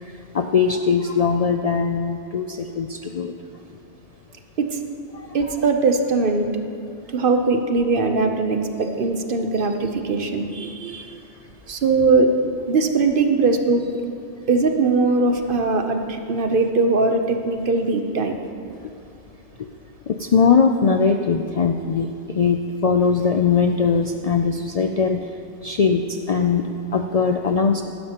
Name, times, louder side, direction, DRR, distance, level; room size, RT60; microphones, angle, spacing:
voice 1, 0.3-3.3 5.1-5.3 20.1-22.1 22.4-25.2 25.6-27.8, left 5 dB, 65° left, 5 dB, 0.3 m, -20 dB
voice 2, 5.3-6.5 7.1-11.1 11.7-13.8 14.5-18.4, right 3 dB, 50° right, 5 dB, 0.9 m, -20 dB
16.0 x 12.0 x 2.9 m, 2.5 s
omnidirectional pair, 1.2 m